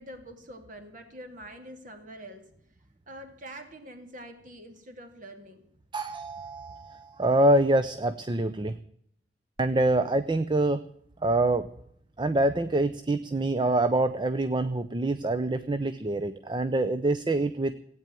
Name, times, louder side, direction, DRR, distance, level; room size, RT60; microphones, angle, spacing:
voice 1, 0.0-2.5 3.1-5.6, right 1 dB, 45° right, 6 dB, 2.5 m, -45 dB
voice 2, 5.9-8.8 9.6-10.8 11.2-11.7 12.2-17.8, right 2 dB, 25° right, 12 dB, 0.6 m, -25 dB
16.5 x 9.1 x 9.0 m, 0.68 s
head